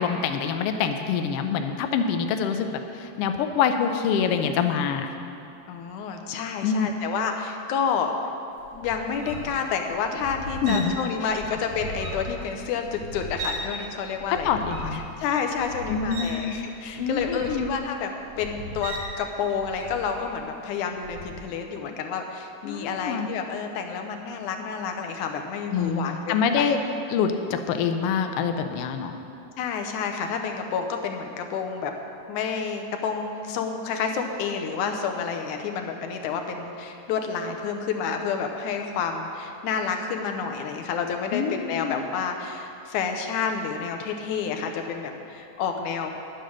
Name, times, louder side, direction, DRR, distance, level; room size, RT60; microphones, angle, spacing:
voice 1, 0.0-5.1 6.6-6.9 10.6-10.9 14.3-15.0 15.9-16.6 17.0-17.7 22.6-23.3 25.7-26.8 27.1-29.2 41.3-42.0, left 6 dB, 75° left, 6 dB, 1.4 m, -25 dB
voice 2, 5.7-8.1 8.7-14.7 14.9-18.1 18.4-26.8 29.6-31.9 32.3-46.1, left 6 dB, 90° left, 4 dB, 2.3 m, -29 dB
sound 1, 8.6-13.7 14.0-20.5 21.0-21.4, right 1 dB, 80° right, 2.9 m, -37 dB
10.0 x 9.1 x 6.3 m, 2.6 s
omnidirectional pair, 3.4 m